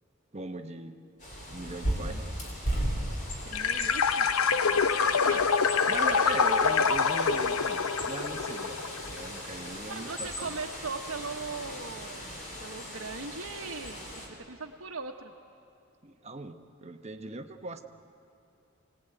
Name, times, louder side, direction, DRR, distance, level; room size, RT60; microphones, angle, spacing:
voice 1, 0.3-1.0 1.5-2.3 5.9-8.8 9.1-10.6 16.0-17.8, right 2 dB, 30° right, 7 dB, 1.1 m, -39 dB
Bird, 1.2-14.3, equal, 35° left, 4.1 m, -37 dB
voice 2, 3.4-4.3 5.2-5.6 6.1-6.3 9.9-15.3, right 4 dB, 75° right, -1 dB, 1.2 m, -39 dB
sound 1, 3.5-9.3, left 6 dB, 90° left, 0.8 m, -26 dB
26.5 x 19.0 x 9.1 m, 2.7 s
head